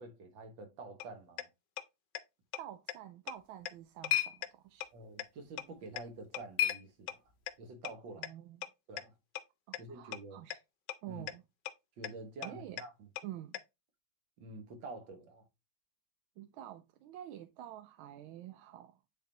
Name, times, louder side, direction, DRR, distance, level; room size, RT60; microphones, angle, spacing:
voice 1, 0.0-1.5 4.9-7.2 7.6-8.3 8.9-9.2 9.8-10.4 11.1-11.2 12.0-13.1 14.4-15.4, right 2 dB, 70° right, 2.1 m, -48 dB
sound 1, 1.0-1.1 1.4-1.5 1.8-1.9 2.1-2.2 2.5-2.6 2.9-3.0 3.3-3.4 3.7-3.8 4.0-4.1 4.4-4.5 4.8-4.9 5.2-5.3 5.6-5.7 6.0-6.1 6.3-6.4 6.7-6.8 7.1-7.2 7.5-7.6 7.8-7.9 8.2-8.3 8.6-8.7 9.0-9.1 9.4-9.5 9.7-9.8 10.1-10.2 10.5-10.6 10.9-11.0 11.3-11.4 11.7-11.8 12.0-12.1 12.4-12.5 12.8-12.9 13.2-13.3 13.5-13.6, left 12 dB, 75° left, 1.2 m, -38 dB
voice 2, 2.6-4.8 8.2-8.6 9.7-10.6 11.0-11.4 12.4-12.8 13.2-13.6 16.4-19.0, right 12 dB, 85° right, 1.4 m, -48 dB
sound 2, 3.3-7.6, left 10 dB, 60° left, 0.7 m, -38 dB
9.1 x 3.8 x 2.8 m
omnidirectional pair, 2.2 m